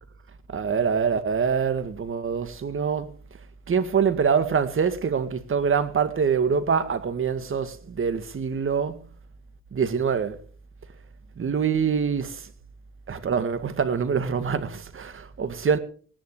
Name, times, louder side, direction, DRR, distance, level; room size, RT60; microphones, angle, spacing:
voice 1, 0.5-3.1 3.7-9.0 9.7-10.4 11.4-12.5 13.1-15.8, right 6 dB, 45° right, 2.0 m, -25 dB
18.5 x 10.5 x 4.9 m
cardioid pair, 90°, 30 cm